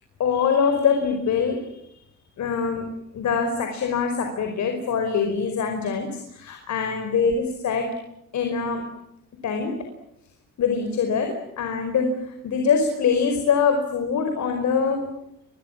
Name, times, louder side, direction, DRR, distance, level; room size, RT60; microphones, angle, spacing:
voice 1, 0.2-1.8 2.4-2.8 3.1-7.9 8.3-8.8 9.4-9.7 10.6-15.1, left 6 dB, 65° left, 5 dB, 5.1 m, -23 dB
29.0 x 23.5 x 7.4 m, 0.78 s
cardioid pair, 90°, 30 cm